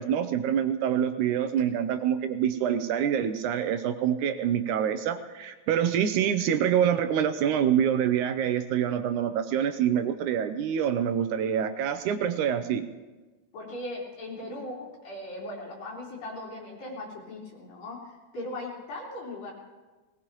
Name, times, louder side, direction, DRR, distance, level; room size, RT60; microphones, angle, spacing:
voice 1, 0.0-12.8 14.4-14.5, right 9 dB, 75° right, 9 dB, 1.9 m, -26 dB
voice 2, 13.5-19.5, left 1 dB, 90° left, -6 dB, 5.8 m, -38 dB
20.5 x 19.0 x 3.0 m, 1.2 s
omnidirectional pair, 3.9 m